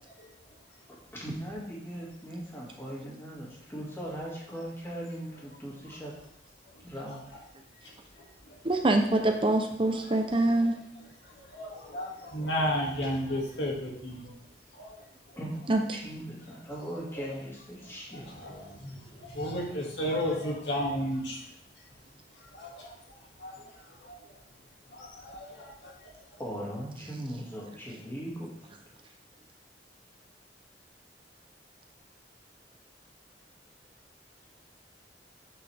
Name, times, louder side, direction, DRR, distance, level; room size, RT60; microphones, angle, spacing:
voice 1, 1.2-6.2 6.8-7.2 15.4-15.6 15.9-18.3 26.4-28.5, equal, 15° left, -4 dB, 2.2 m, -39 dB
voice 2, 8.6-10.8 15.7-15.8, right 2 dB, 30° right, 5 dB, 0.7 m, -24 dB
voice 3, 11.4-14.3 14.8-15.0 17.2-17.3 18.1-21.4 22.5-22.9 23.4-23.5 24.0-24.2 24.9-25.9, equal, 90° left, -2 dB, 2.2 m, -33 dB
8.5 x 5.5 x 3.5 m, 0.72 s
head